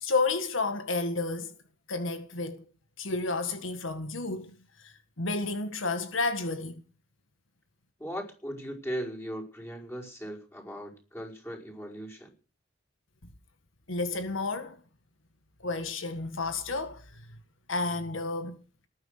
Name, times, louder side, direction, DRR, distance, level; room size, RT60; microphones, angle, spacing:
voice 1, 0.0-1.5 1.9-2.6 3.0-6.8 13.9-14.8 15.6-17.4 17.7-18.6, left 3 dB, 85° left, 1.7 m, -31 dB
voice 2, 8.0-12.3, equal, 15° left, 5.2 m, -38 dB
19.0 x 10.5 x 6.7 m
head